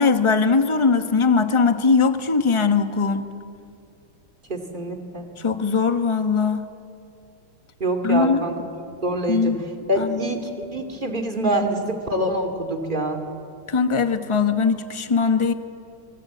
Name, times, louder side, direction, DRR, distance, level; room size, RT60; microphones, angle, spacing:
voice 1, 0.0-3.3 5.4-6.6 8.0-8.4 9.3-9.6 10.0-10.3 13.7-15.5, left 5 dB, 25° left, 9 dB, 0.6 m, -20 dB
voice 2, 4.5-5.3 7.8-8.5 8.8-9.5 9.9-13.2, right 1 dB, 25° right, 3 dB, 2.4 m, -25 dB
28.5 x 23.0 x 8.4 m, 2.5 s
omnidirectional pair, 2.3 m